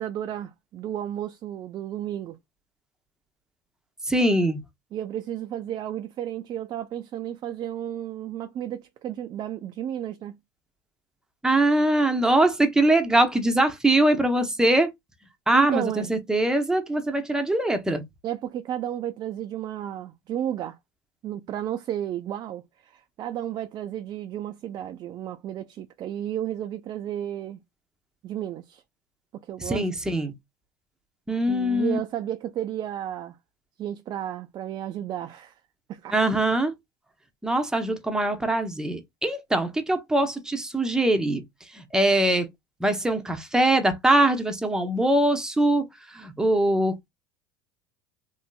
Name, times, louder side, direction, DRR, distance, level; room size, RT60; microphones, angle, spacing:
voice 1, 0.0-2.4 4.9-10.4 15.5-16.1 18.2-20.8 21.2-27.6 28.2-28.8 29.3-29.9 31.5-33.4 33.8-35.6 35.9-36.2, right 11 dB, 45° right, 0.4 m, -33 dB
voice 2, 4.1-4.6 11.4-14.9 15.5-18.0 29.6-30.3 31.3-32.0 36.1-36.7 37.4-41.4 41.7-42.5 42.8-47.1, right 1 dB, 5° right, 0.8 m, -22 dB
3.0 x 2.7 x 2.2 m
supercardioid pair, 95°, 10 cm